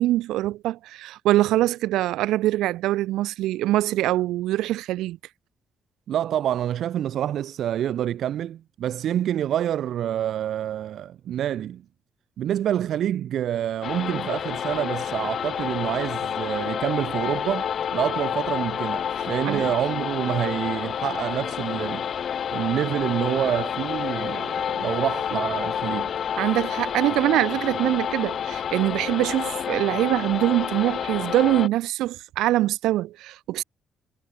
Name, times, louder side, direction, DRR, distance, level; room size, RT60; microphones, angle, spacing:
voice 1, 0.0-5.2 14.2-14.3 19.2-19.7 26.4-33.6, right 15 dB, 90° right, 2.4 m, -24 dB
voice 2, 6.1-11.8 12.4-22.1 22.5-26.1, right 11 dB, 70° right, 1.3 m, -27 dB
sound 1, 13.8-31.7, left 8 dB, 60° left, 2.8 m, -29 dB
cardioid pair, 90°, 0 cm